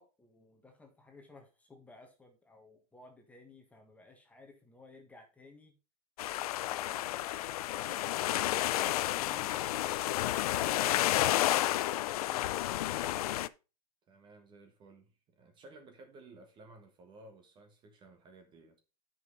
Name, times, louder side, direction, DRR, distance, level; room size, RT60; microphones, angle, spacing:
voice 1, 0.0-5.8 6.8-8.0 8.9-9.7, left 3 dB, 5° left, 1.5 m, -57 dB
sound 1, 6.2-13.5, left 14 dB, 70° left, 0.5 m, -31 dB
voice 2, 9.5-10.2 14.1-18.8, right 2 dB, 25° right, 1.3 m, -56 dB
9.4 x 5.6 x 3.9 m
supercardioid pair, 145°, 20 cm